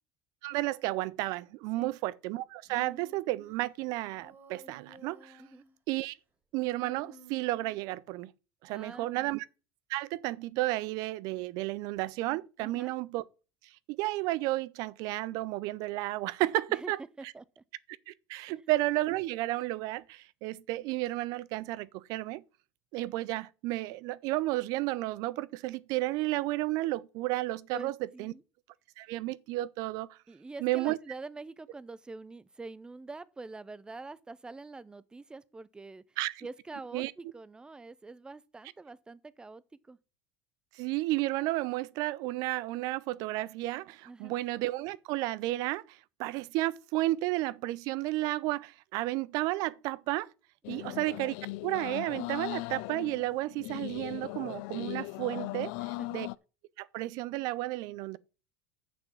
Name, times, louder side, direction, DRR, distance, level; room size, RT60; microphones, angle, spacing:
voice 1, 0.4-5.4 5.9-6.2 6.5-8.3 8.6-9.5 9.9-13.2 13.9-17.0 18.1-22.4 22.9-27.9 28.2-28.3 29.0-30.2 30.6-31.0 36.2-36.5 36.9-37.1 40.7-50.3 50.7-51.3 51.6-56.3 56.8-58.2, right 18 dB, 60° right, 0.5 m, -32 dB
Human voice, 2.7-3.6 4.2-5.7 6.6-7.9, right 1 dB, 30° right, 2.9 m, -54 dB
voice 2, 8.7-9.4 12.6-12.9 16.7-16.9 17.2-17.6 18.5-18.6 27.7-28.4 30.3-40.0 44.1-44.3 50.7-51.0 56.0-56.3, right 3 dB, 10° right, 0.6 m, -45 dB
sound 1, 50.6-56.4, left 21 dB, 70° left, 0.4 m, -39 dB
6.8 x 6.0 x 7.1 m
supercardioid pair, 110°, 7 cm